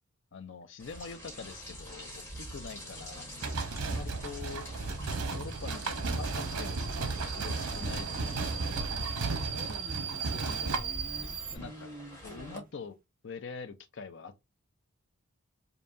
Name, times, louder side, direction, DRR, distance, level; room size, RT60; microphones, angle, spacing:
voice 1, 0.3-3.3 3.8-4.7 5.3-8.7 10.6-10.9 11.2-11.9 12.2-13.0 13.2-14.4, left 5 dB, 55° left, 0.5 m, -45 dB
Rain, 0.8-12.6, right 1 dB, 10° left, 1.4 m, -43 dB
sound 1, 3.4-10.8, right 3 dB, 90° right, 0.8 m, -35 dB
Subway metro underground, 5.5-11.6, right 8 dB, 65° right, 0.5 m, -40 dB
voice 2, 9.3-12.7, right 1 dB, 40° right, 0.8 m, -48 dB
5.3 x 2.3 x 2.6 m
head